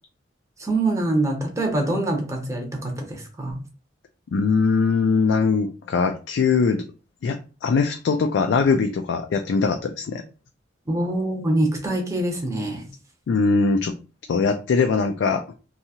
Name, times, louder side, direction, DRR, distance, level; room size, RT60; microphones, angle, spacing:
voice 1, 0.6-3.6 10.9-12.9, right 2 dB, 15° right, 0.7 m, -24 dB
voice 2, 4.3-6.8 7.2-10.2 13.3-14.0 14.3-15.4, left 4 dB, 70° left, 0.3 m, -21 dB
2.7 x 2.3 x 2.8 m
head